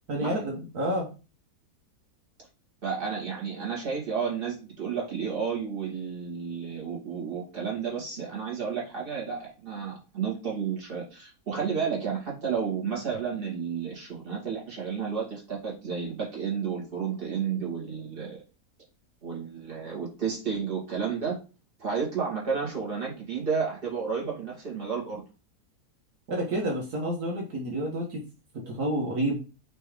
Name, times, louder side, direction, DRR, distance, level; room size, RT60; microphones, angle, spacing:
voice 1, 0.1-1.1 26.3-28.2 28.6-29.4, right 1 dB, 70° right, -1 dB, 1.8 m, -29 dB
voice 2, 2.8-18.4 19.2-21.4 21.8-25.2, right 6 dB, 35° right, -3 dB, 2.6 m, -31 dB
6.1 x 3.4 x 4.9 m, 0.33 s
omnidirectional pair, 1.7 m